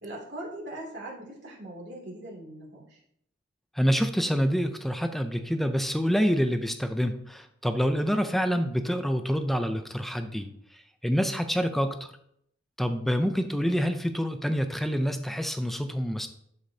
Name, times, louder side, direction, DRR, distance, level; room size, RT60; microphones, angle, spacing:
voice 1, 0.0-3.0, right 1 dB, 60° right, -3 dB, 2.7 m, -40 dB
voice 2, 3.8-10.5 11.0-12.1 12.8-16.3, equal, ahead, 7 dB, 0.5 m, -27 dB
11.5 x 5.0 x 2.8 m, 0.70 s
head